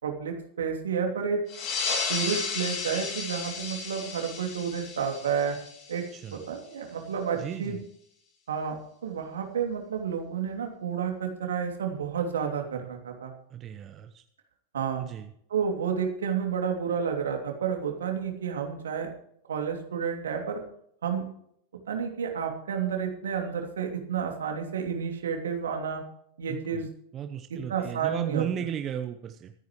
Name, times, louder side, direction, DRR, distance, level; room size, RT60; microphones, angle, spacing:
voice 1, 0.0-1.4 2.1-5.6 5.9-6.0 6.3-7.8 8.5-13.3 14.7-15.1 15.5-19.1 19.5-20.6 21.0-21.2 21.9-26.0 26.4-26.9 27.5-28.4, right 7 dB, 65° right, 3 dB, 2.8 m, -30 dB
sound 1, 1.5-6.6, left 4 dB, 40° left, 2.5 m, -33 dB
voice 2, 7.4-7.8 13.5-14.2 15.0-15.3 26.5-26.9 27.1-29.5, right 9 dB, 30° right, 7 dB, 0.9 m, -35 dB
25.0 x 9.3 x 3.2 m, 0.69 s
figure-of-eight pair, 90°, 0 cm